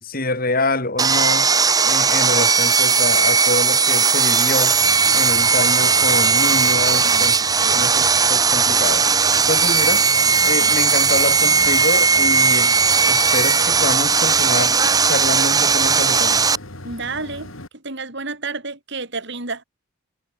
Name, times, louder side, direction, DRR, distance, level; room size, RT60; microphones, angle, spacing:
voice 1, 0.0-1.5 1.8-4.8 5.1-7.4 7.7-9.1 9.5-10.0 10.4-12.7 13.1-16.5, left 2 dB, 45° left, 4.4 m, -26 dB
Sawing, 1.0-16.6, right 5 dB, 20° right, 1.4 m, -17 dB
sound 1, 4.7-17.7, left 1 dB, 80° left, 6.7 m, -38 dB
voice 2, 6.9-7.9 16.8-17.5 17.8-19.6, right 3 dB, 55° right, 4.7 m, -31 dB
head